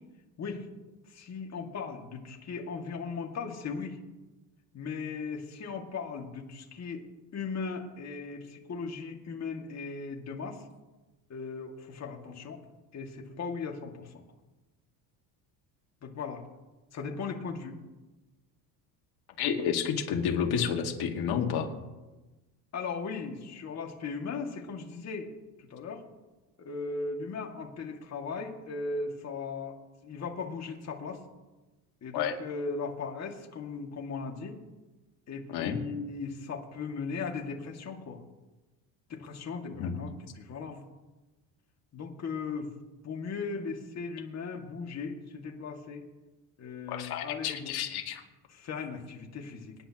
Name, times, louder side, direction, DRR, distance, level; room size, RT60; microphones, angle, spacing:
voice 1, 1.1-4.0 4.7-7.0 7.3-10.6 11.3-12.6 12.9-14.2 16.0-16.4 16.9-17.8 22.7-25.3 25.7-26.0 26.6-29.8 30.0-31.2 32.0-34.6 35.3-38.2 39.1-40.8 41.9-42.7 43.0-46.0 46.6-47.8 48.5-49.7, left 4 dB, 40° left, 1 dB, 2.2 m, -37 dB
voice 2, 19.4-21.7 32.1-32.4 35.5-35.8 39.6-40.0 46.9-48.2, left 7 dB, 65° left, 3 dB, 2.1 m, -30 dB
25.0 x 10.5 x 3.0 m, 1.1 s
cardioid pair, 115°, 40 cm